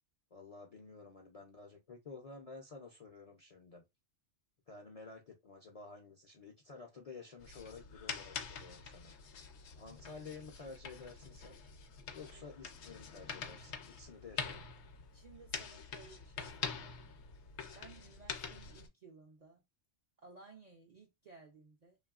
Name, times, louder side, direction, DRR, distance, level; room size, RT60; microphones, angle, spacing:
voice 1, 0.3-3.8 4.7-9.1 9.8-11.6 12.1-14.6, left 4 dB, 50° left, 0.4 m, -52 dB
sound 1, 7.4-18.9, left 6 dB, 70° left, 0.8 m, -45 dB
voice 2, 15.1-17.0 17.7-19.6 20.2-22.0, right 4 dB, 55° right, 0.4 m, -58 dB
2.9 x 2.3 x 2.3 m
omnidirectional pair, 1.3 m